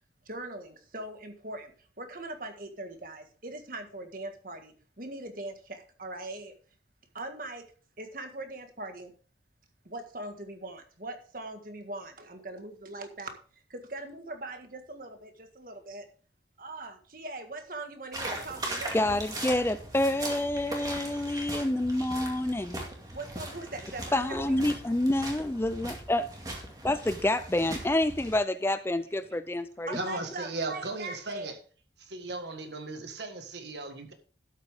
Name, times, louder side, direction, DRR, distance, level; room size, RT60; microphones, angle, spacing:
voice 1, 0.3-1.7 2.0-6.5 7.1-7.6 8.0-9.1 9.8-13.4 13.7-16.0 16.6-19.2 23.1-24.6 29.9-31.5, right 2 dB, 50° right, 1.7 m, -41 dB
sound 1, 18.1-28.3, right 1 dB, 20° right, 2.2 m, -39 dB
voice 2, 18.9-22.8 24.1-26.3 26.8-30.0, left 1 dB, 15° left, 0.4 m, -28 dB
voice 3, 29.9-31.6 32.0-34.1, right 2 dB, 65° right, 1.7 m, -37 dB
12.0 x 8.4 x 3.6 m
head